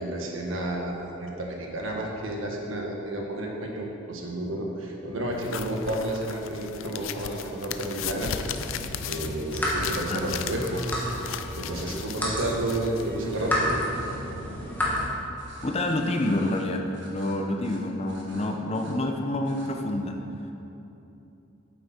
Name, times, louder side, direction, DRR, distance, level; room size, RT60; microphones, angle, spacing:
voice 1, 0.0-8.3 9.0-10.9 11.6-13.9, right 1 dB, 80° right, 0 dB, 1.3 m, -31 dB
sound 1, 5.4-13.6, left 8 dB, 80° left, 0.4 m, -37 dB
sound 2, 8.4-15.1, left 1 dB, 10° left, 1.5 m, -31 dB
sound 3, 9.5-10.8 11.8-12.1 13.3-14.2 15.3-16.6 16.9-17.4 17.6-17.8 18.1-18.9 19.4-19.7, right 2 dB, 60° right, 1.4 m, -48 dB
voice 2, 15.3-20.2, left 1 dB, 30° left, 3 dB, 0.6 m, -28 dB
8.6 x 7.8 x 4.3 m, 2.9 s
head